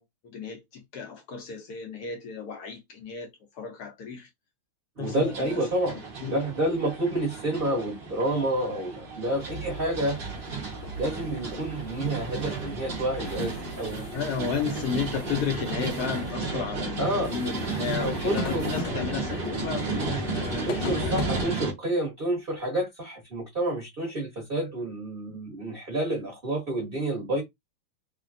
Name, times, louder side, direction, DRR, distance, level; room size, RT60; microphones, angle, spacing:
voice 1, 0.0-4.3 5.0-5.6 6.2-6.4 7.7-7.9 14.1-21.2, left 6 dB, 70° left, 1.0 m, -33 dB
voice 2, 5.0-6.0 6.3-10.2 11.0-14.1 17.0-17.3 18.0-18.7 19.3-19.5 20.6-27.4, right 1 dB, 35° right, 1.0 m, -29 dB
sound 1, 5.0-21.7, right 4 dB, 50° right, 0.6 m, -34 dB
sound 2, 9.3-21.4, left 1 dB, 90° left, 1.5 m, -37 dB
3.3 x 2.2 x 2.5 m
omnidirectional pair, 2.3 m